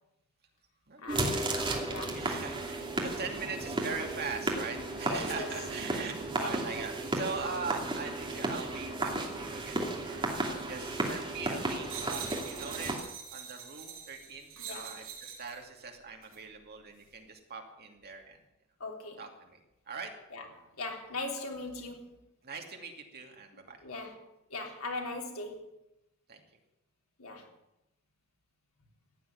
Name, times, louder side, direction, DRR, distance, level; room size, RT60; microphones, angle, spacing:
voice 1, 1.0-1.6 1.8-2.2 5.0-5.5 6.3-6.5 10.8-11.0 11.2-11.8 14.6-15.0 18.8-19.2 20.3-20.5 20.8-22.2 23.8-24.2 24.5-25.7 27.2-27.5, left 2 dB, 70° left, 3.5 m, -40 dB
sound 1, 1.1-13.0, right 2 dB, 25° right, 2.8 m, -34 dB
voice 2, 2.1-18.4 19.2-19.6 19.9-20.1 22.4-23.8 26.3-26.4, right 4 dB, 45° right, 2.5 m, -41 dB
sound 2, 11.8-15.6 16.2-16.4, right 7 dB, 65° right, 4.5 m, -44 dB
15.0 x 9.6 x 9.7 m
head